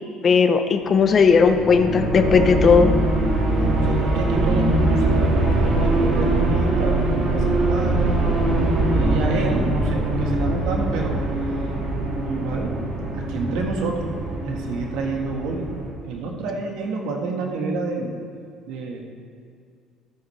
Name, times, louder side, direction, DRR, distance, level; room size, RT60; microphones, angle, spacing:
voice 1, 0.2-2.9, left 5 dB, 35° left, 7 dB, 0.7 m, -16 dB
sound 1, 1.0-15.9, right 2 dB, 45° right, 1.9 m, -22 dB
voice 2, 3.5-8.2 8.9-11.2 12.2-12.7 13.1-14.1 14.4-15.7 16.0-18.1 18.7-19.0, right 3 dB, 80° right, 1 dB, 1.5 m, -29 dB
14.0 x 9.3 x 3.3 m, 2.2 s
cardioid pair, 140°, 0 cm